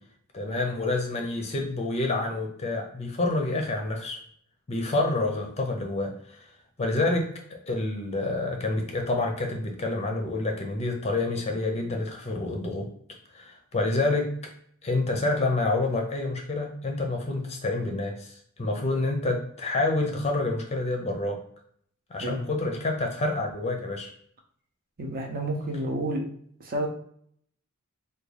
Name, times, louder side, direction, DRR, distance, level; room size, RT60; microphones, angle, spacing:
voice 1, 0.3-4.2 4.7-6.5 6.8-12.9 13.3-14.3 14.8-21.4 22.1-24.1, left 2 dB, 30° left, 2 dB, 0.5 m, -28 dB
voice 2, 25.0-26.3 26.6-26.9, right 1 dB, 45° right, 1 dB, 0.6 m, -30 dB
3.5 x 2.3 x 3.2 m, 0.63 s
head